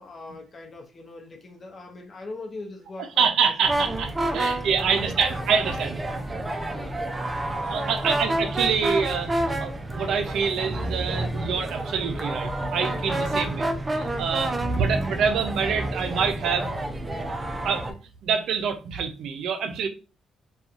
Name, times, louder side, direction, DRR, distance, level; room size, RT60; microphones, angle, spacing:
voice 1, 0.0-3.9 4.3-5.1 6.7-6.9 7.7-8.2 14.4-14.8, left 2 dB, 40° left, 0.7 m, -42 dB
voice 2, 3.2-6.0 7.6-9.3 9.6-16.7 17.6-18.0 18.2-19.9, right 6 dB, 75° right, 0.5 m, -26 dB
sound 1, 3.6-17.9, right 1 dB, 25° right, 0.5 m, -29 dB
2.7 x 2.3 x 2.4 m
cardioid pair, 90°, 0 cm